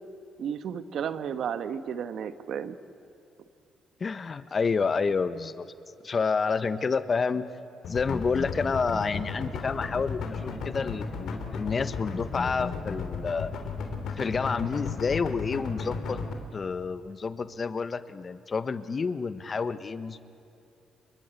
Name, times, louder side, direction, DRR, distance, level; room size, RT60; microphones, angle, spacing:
voice 1, 0.4-2.7, right 8 dB, 65° right, 11 dB, 1.4 m, -33 dB
voice 2, 4.0-5.7 6.0-7.5 7.9-13.5 14.2-16.2 16.5-20.2, left 5 dB, 40° left, 13 dB, 1.3 m, -29 dB
sound 1, 7.8-16.3, left 5 dB, 75° left, 3.6 m, -34 dB
29.5 x 23.5 x 8.5 m, 2.8 s
cardioid pair, 90°, 0 cm